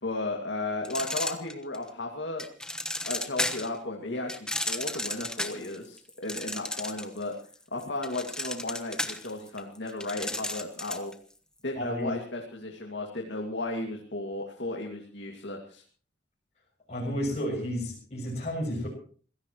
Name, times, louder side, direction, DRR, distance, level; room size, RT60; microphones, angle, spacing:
voice 1, 0.0-7.3 7.7-11.1 11.6-15.8, left 2 dB, 75° left, 1 dB, 2.3 m, -35 dB
sound 1, 0.8-1.9 2.4-3.8 4.3-7.2 7.5-11.1, left 1 dB, 5° left, 1.2 m, -33 dB
voice 2, 11.7-12.1 16.9-18.9, equal, 35° left, -5 dB, 7.5 m, -31 dB
25.5 x 16.5 x 3.1 m, 0.43 s
head